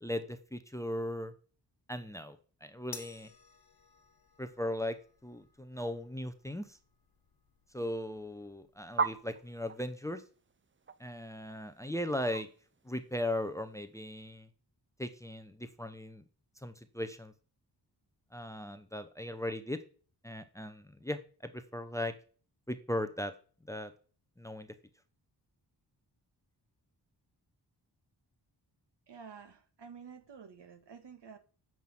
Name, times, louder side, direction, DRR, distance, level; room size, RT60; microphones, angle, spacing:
voice 1, 0.0-1.3 1.9-2.4 2.6-3.3 4.4-5.0 5.2-6.8 7.7-10.2 11.0-12.5 12.8-14.5 15.0-16.2 16.6-17.3 18.3-19.8 20.2-22.1 22.7-23.3 23.7-23.9 24.4-24.7, left 1 dB, 5° left, 0.7 m, -38 dB
sound 1, 2.9-9.5, left 5 dB, 55° left, 1.5 m, -56 dB
sound 2, 8.9-13.6, right 5 dB, 30° right, 0.5 m, -38 dB
voice 2, 29.1-31.4, right 6 dB, 75° right, 1.6 m, -50 dB
9.2 x 6.1 x 7.7 m
wide cardioid pair, 175°, 42 cm